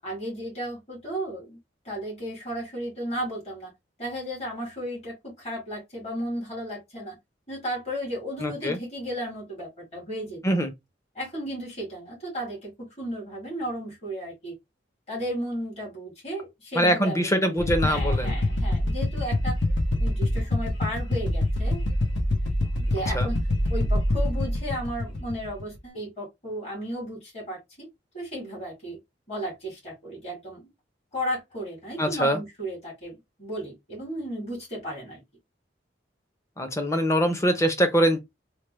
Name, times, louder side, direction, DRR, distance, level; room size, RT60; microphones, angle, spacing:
voice 1, 0.0-1.6 1.8-3.7 4.0-7.2 7.5-10.4 11.2-14.5 15.1-19.6 20.0-21.8 22.8-23.4 23.7-27.9 28.1-29.0 29.3-30.6 31.1-35.2, equal, 35° left, 1.7 m, -34 dB
voice 2, 8.4-8.8 10.4-10.7 16.8-18.4 23.1-23.3 32.0-32.4 36.6-38.2, equal, 15° left, 0.6 m, -23 dB
sound 1, 17.6-25.8, left 1 dB, 75° left, 0.8 m, -25 dB
3.2 x 2.1 x 3.2 m
head